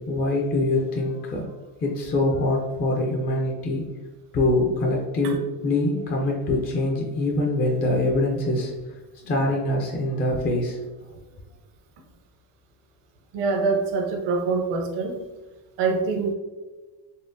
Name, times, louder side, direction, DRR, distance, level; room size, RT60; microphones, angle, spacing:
voice 1, 0.1-1.5 1.8-3.8 4.3-8.7 9.2-11.2, left 1 dB, 25° left, -1 dB, 0.3 m, -24 dB
voice 2, 13.3-15.2 15.8-16.3, right 4 dB, 65° right, 3 dB, 0.8 m, -24 dB
4.2 x 3.2 x 2.5 m, 1.2 s
cardioid pair, 145°, 46 cm